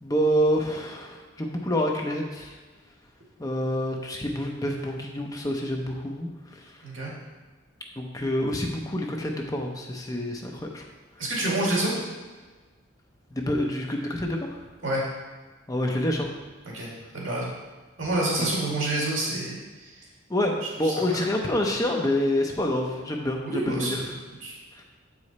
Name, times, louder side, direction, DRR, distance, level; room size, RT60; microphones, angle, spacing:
voice 1, 0.0-2.6 3.4-6.3 8.0-10.8 13.3-14.6 15.7-16.3 18.4-18.5 20.3-24.0 24.8-24.9, left 1 dB, 20° left, 1 dB, 0.7 m, -27 dB
voice 2, 11.2-11.9 14.8-15.0 16.7-16.9 17.1-17.5 18.0-19.6 19.8-19.9 20.8-21.2 23.4-24.1 24.4-24.5, right 1 dB, 80° right, -4 dB, 2.1 m, -27 dB
7.7 x 4.9 x 4.2 m, 1.3 s
head